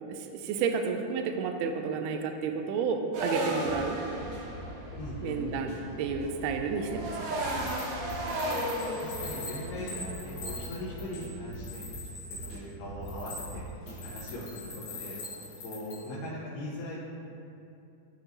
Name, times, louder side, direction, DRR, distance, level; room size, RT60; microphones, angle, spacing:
voice 1, 0.1-4.0 5.2-7.2, right 5 dB, 85° right, 5 dB, 2.5 m, -31 dB
sound 1, 3.1-10.9, right 1 dB, 65° right, 2.4 m, -35 dB
sound 2, 3.6-14.5, right 1 dB, 35° right, 1.8 m, -44 dB
voice 2, 5.0-5.4 8.4-12.1 12.5-13.6 14.0-15.2 15.6-17.0, left 1 dB, 80° left, -9 dB, 3.1 m, -40 dB
sound 3, 7.4-7.8 8.1-12.5 13.0-13.5 13.9-16.0, left 2 dB, 65° left, 3.8 m, -42 dB
13.0 x 5.9 x 3.0 m, 2.7 s
omnidirectional pair, 4.5 m